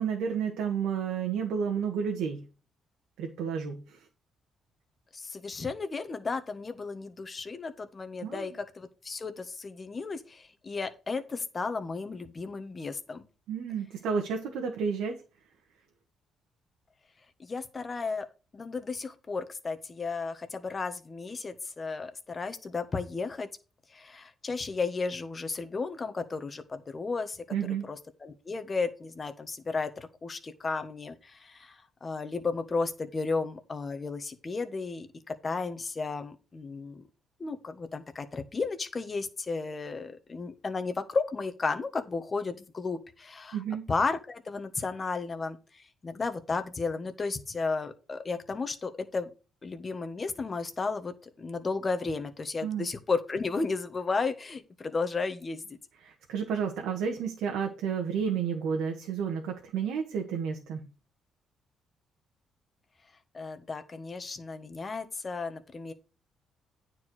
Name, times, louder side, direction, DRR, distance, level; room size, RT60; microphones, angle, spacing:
voice 1, 0.0-2.4 3.2-4.0 8.2-8.4 13.5-15.2 27.5-27.9 43.5-43.8 52.6-52.9 56.0-60.8, right 7 dB, 90° right, 2 dB, 1.5 m, -31 dB
voice 2, 5.1-13.2 17.4-18.3 18.5-23.5 23.9-27.4 27.9-37.1 37.4-43.6 43.9-49.3 49.6-55.8 63.3-65.9, left 4 dB, 35° left, 8 dB, 1.4 m, -34 dB
9.4 x 4.7 x 6.2 m, 0.33 s
cardioid pair, 90°, 0 cm